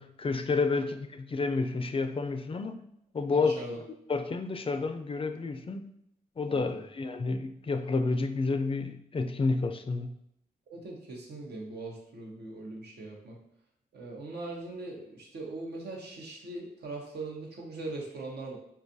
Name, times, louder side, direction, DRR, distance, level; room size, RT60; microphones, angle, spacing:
voice 1, 0.0-2.8 3.1-3.6 4.1-5.9 6.4-10.2, left 3 dB, 35° left, 0.4 m, -30 dB
voice 2, 3.3-3.8 6.5-6.8 10.7-13.4 13.9-18.6, right 2 dB, 80° right, 0.8 m, -40 dB
4.4 x 2.3 x 2.6 m
supercardioid pair, 40°, 17 cm